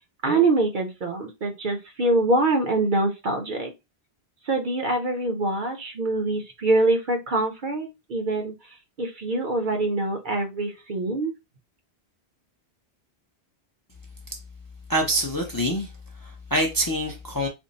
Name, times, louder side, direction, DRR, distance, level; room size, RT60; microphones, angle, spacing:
voice 1, 0.2-3.7 4.5-8.5 9.0-11.3, right 2 dB, 55° right, 0.8 m, -24 dB
voice 2, 14.9-15.9 16.2-17.5, equal, 25° left, 0.5 m, -25 dB
3.5 x 2.0 x 3.9 m
omnidirectional pair, 1.1 m